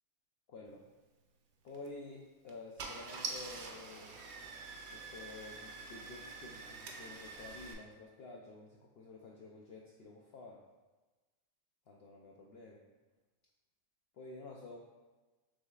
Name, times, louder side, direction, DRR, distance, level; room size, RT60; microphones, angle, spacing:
voice 1, 0.5-0.9 1.6-4.1 4.9-10.6 11.9-12.8 14.1-14.8, left 3 dB, 75° left, -2 dB, 0.5 m, -51 dB
Car / Engine starting, 1.7-1.9 2.5-2.6 2.8-7.7, right 4 dB, 65° right, 0.7 m, -45 dB
6.2 x 3.4 x 2.3 m, 1.2 s
omnidirectional pair, 1.6 m